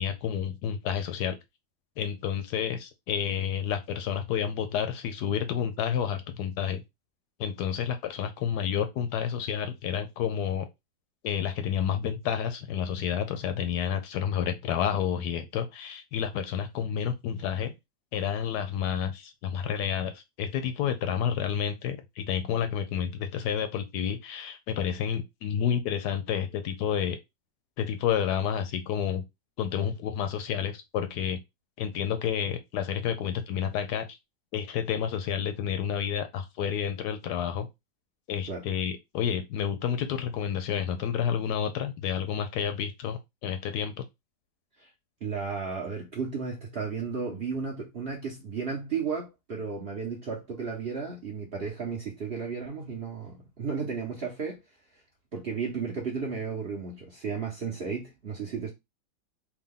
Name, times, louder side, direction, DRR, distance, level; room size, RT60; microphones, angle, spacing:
voice 1, 0.0-1.4 2.0-6.8 7.4-10.7 11.2-17.7 18.1-27.2 27.8-29.2 29.6-31.4 31.8-34.1 34.5-37.7 38.3-44.0, left 8 dB, 75° left, 1.1 m, -30 dB
voice 2, 45.2-54.6 55.3-58.7, right 5 dB, 50° right, 0.7 m, -34 dB
3.5 x 2.2 x 3.6 m
omnidirectional pair, 1.9 m